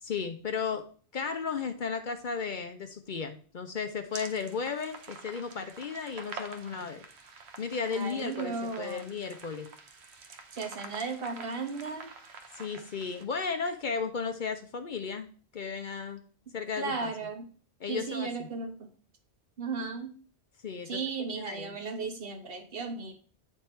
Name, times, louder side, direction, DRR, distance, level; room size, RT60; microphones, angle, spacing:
voice 1, 0.0-7.1 7.6-9.7 12.5-15.3 15.5-16.2 16.5-17.1 17.8-18.5 20.6-20.9 21.4-21.7, left 5 dB, 55° left, 8 dB, 0.7 m, -34 dB
sound 1, 4.1-13.2, right 4 dB, 80° right, 1.1 m, -47 dB
voice 2, 7.9-9.1 10.5-12.1 16.8-17.5 17.9-18.9 19.6-20.1 20.8-23.1, right 4 dB, 60° right, 5 dB, 1.3 m, -35 dB
8.7 x 3.5 x 4.4 m, 0.42 s
omnidirectional pair, 1.1 m